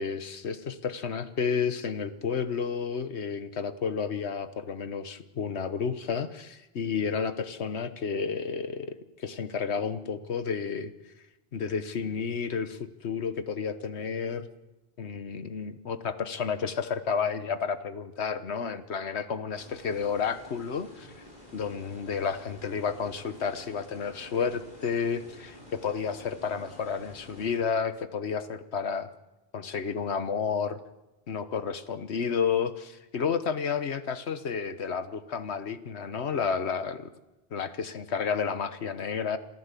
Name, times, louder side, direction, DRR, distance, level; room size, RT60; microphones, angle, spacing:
voice 1, 0.0-10.9 11.5-14.5 15.0-21.2 21.5-29.1 29.5-30.8 31.3-37.1 37.5-39.4, left 6 dB, 75° left, 12 dB, 1.4 m, -31 dB
sound 1, 19.6-27.6, left 1 dB, 45° left, 5.5 m, -50 dB
27.0 x 14.0 x 8.3 m, 1.1 s
omnidirectional pair, 1.1 m